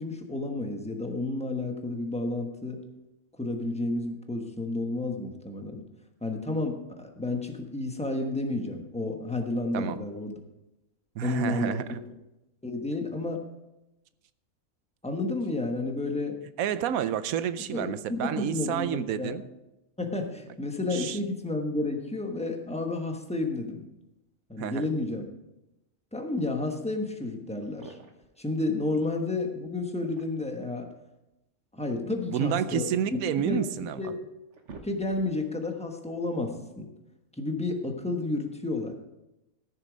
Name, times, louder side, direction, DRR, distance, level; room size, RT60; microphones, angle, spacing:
voice 1, 0.0-2.8 3.4-5.8 6.2-10.4 11.2-11.8 12.6-13.4 15.0-16.4 17.7-19.3 20.0-23.8 24.5-25.2 26.1-28.0 28.4-30.9 31.7-33.2 33.4-33.6 34.0-34.2 34.8-36.9 37.4-38.9, left 2 dB, 5° left, 3 dB, 1.0 m, -31 dB
voice 2, 11.2-12.0 16.6-19.4 20.9-21.2 24.6-24.9 32.0-34.0, right 9 dB, 80° right, 13 dB, 1.1 m, -30 dB
sound 1, 27.6-28.4 29.8-30.6 31.9-33.3 33.9-34.0 34.3-35.5, right 4 dB, 60° right, 1.4 m, -50 dB
14.0 x 6.7 x 5.1 m, 0.96 s
omnidirectional pair, 1.5 m